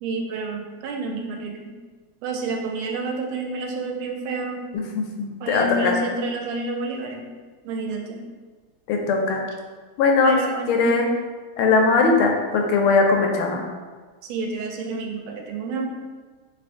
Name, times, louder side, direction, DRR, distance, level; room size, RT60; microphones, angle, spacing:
voice 1, 0.0-1.7 2.2-4.6 5.4-7.2 7.6-8.2 10.2-10.9 12.1-12.2 14.3-15.9, right 3 dB, 85° right, 2 dB, 1.4 m, -29 dB
voice 2, 4.7-5.9 8.9-9.4 10.0-10.4 10.7-11.1 11.6-13.6, left 4 dB, 85° left, 2 dB, 1.4 m, -20 dB
3.5 x 2.5 x 3.6 m, 1.4 s
omnidirectional pair, 2.3 m